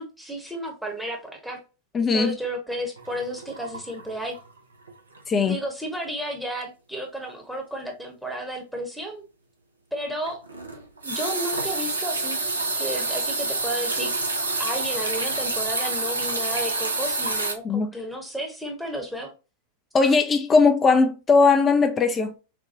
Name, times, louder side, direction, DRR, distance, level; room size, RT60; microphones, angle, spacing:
voice 1, 0.0-1.6 2.1-4.4 5.5-9.2 9.9-10.4 11.0-12.4 12.7-14.1 14.6-19.3, right 1 dB, ahead, 0.9 m, -32 dB
voice 2, 1.9-2.3 5.3-5.6 17.6-17.9 19.9-22.3, left 4 dB, 20° left, 0.4 m, -19 dB
sound 1, 3.0-4.6 4.9-5.2 5.5-5.6 10.2-17.5, right 3 dB, 75° right, 0.6 m, -28 dB
4.2 x 2.2 x 2.7 m
figure-of-eight pair, 90°, 0 cm